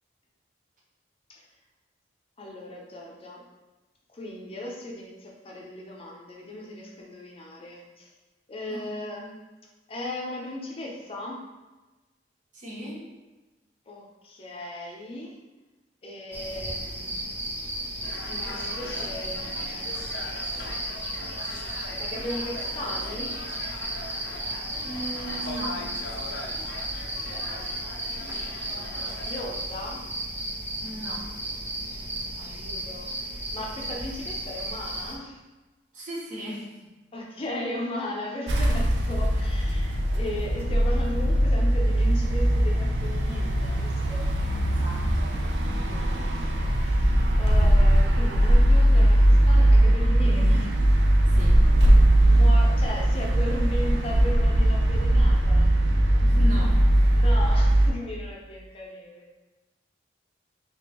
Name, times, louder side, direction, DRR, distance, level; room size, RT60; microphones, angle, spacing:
voice 1, 2.4-3.4 4.1-8.1 8.5-9.3 9.9-11.4 13.9-15.4 16.0-17.2 18.3-23.3 27.2-27.7 28.5-30.2 32.4-35.4 37.1-44.3 45.9-50.7 52.3-55.7 57.1-59.4, left 1 dB, 35° left, -2 dB, 0.6 m, -37 dB
voice 2, 12.5-13.1 24.8-25.8 30.8-31.3 35.9-36.7 44.7-45.4 51.3-51.6 56.2-56.9, equal, 45° right, -4 dB, 0.9 m, -36 dB
sound 1, 16.3-35.2, right 1 dB, 10° right, 0.4 m, -34 dB
sound 2, 18.0-29.4, left 2 dB, 80° left, 0.5 m, -41 dB
sound 3, 38.5-57.9, right 1 dB, 80° right, 0.5 m, -20 dB
3.5 x 2.9 x 2.9 m, 1.1 s
head